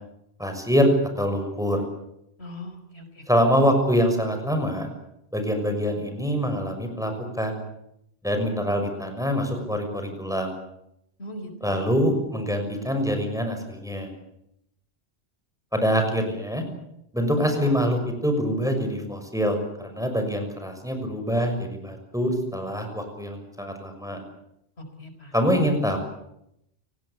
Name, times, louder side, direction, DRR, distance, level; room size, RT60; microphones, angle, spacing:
voice 1, 0.4-1.8 3.3-4.9 5.3-7.6 8.2-10.5 11.6-14.1 15.7-16.6 17.1-24.2 25.3-26.0, equal, 5° right, 5 dB, 6.2 m, -25 dB
voice 2, 2.4-3.2 11.2-11.8 17.3-17.7 25.0-25.3, left 1 dB, 80° left, 7 dB, 4.9 m, -39 dB
29.5 x 19.0 x 8.5 m, 0.79 s
omnidirectional pair, 1.1 m